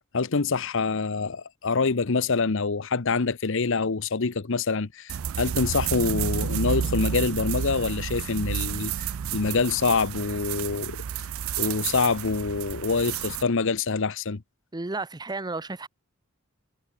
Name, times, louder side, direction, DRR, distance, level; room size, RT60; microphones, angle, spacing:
voice 1, 0.1-11.0 11.6-14.4, left 4 dB, 65° left, 0.9 m, -26 dB
sound 1, 5.1-13.4, right 8 dB, 75° right, 0.4 m, -30 dB
voice 2, 14.7-15.9, right 3 dB, 20° right, 0.7 m, -32 dB
head